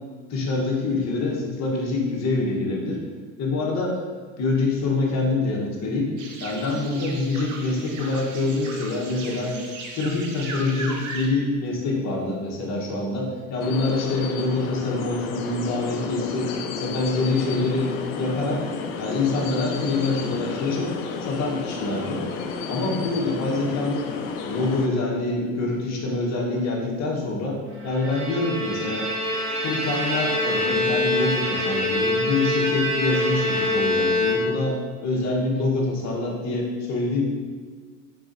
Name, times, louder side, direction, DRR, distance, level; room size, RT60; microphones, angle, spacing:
voice 1, 0.3-3.0 3.4-4.0 4.4-6.1 6.4-9.5 10.0-16.5 16.8-17.9 18.2-18.6 19.0-20.9 21.2-22.2 22.7-24.1 24.4-29.1 29.6-37.2, left 3 dB, 45° left, -2 dB, 1.2 m, -25 dB
sound 1, 6.2-11.3, right 3 dB, 50° right, 0.8 m, -37 dB
sound 2, 13.6-24.9, left 5 dB, 70° left, 0.6 m, -32 dB
Bowed string instrument, 27.8-34.8, left 1 dB, 30° right, 1.2 m, -25 dB
4.7 x 4.1 x 2.6 m, 1.5 s
supercardioid pair, 100°, 38 cm